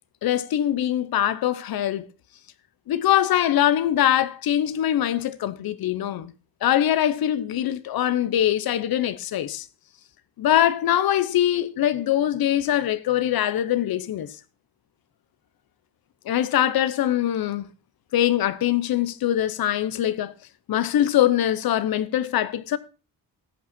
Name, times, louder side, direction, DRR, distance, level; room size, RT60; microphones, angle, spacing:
voice 1, 0.2-2.1 2.9-6.3 6.6-9.7 10.4-14.3 16.2-17.7 18.1-20.3 20.7-22.8, left 11 dB, 90° left, 1.0 m, -23 dB
13.5 x 8.5 x 4.4 m
cardioid pair, 120°, 35 cm